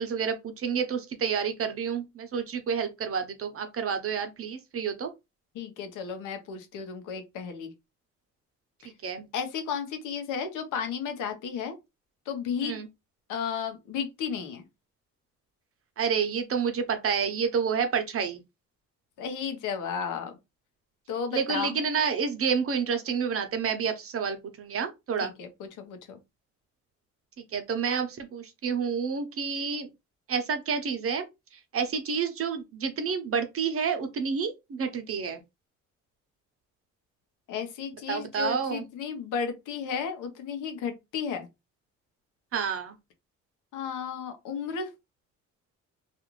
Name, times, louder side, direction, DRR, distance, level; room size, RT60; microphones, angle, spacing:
voice 1, 0.0-5.1 9.0-9.3 12.6-12.9 16.0-18.4 21.3-25.3 27.5-29.9 30.3-31.3 31.7-35.4 38.1-38.8 42.5-42.9, right 6 dB, 50° right, 0.8 m, -29 dB
voice 2, 5.5-7.7 8.8-8.9 9.3-11.7 12.3-12.8 13.3-14.6 19.2-20.3 21.1-21.8 25.2-26.2 37.5-41.5 43.7-44.9, left 6 dB, 90° left, 0.8 m, -33 dB
2.5 x 2.4 x 3.0 m
cardioid pair, 90°, 30 cm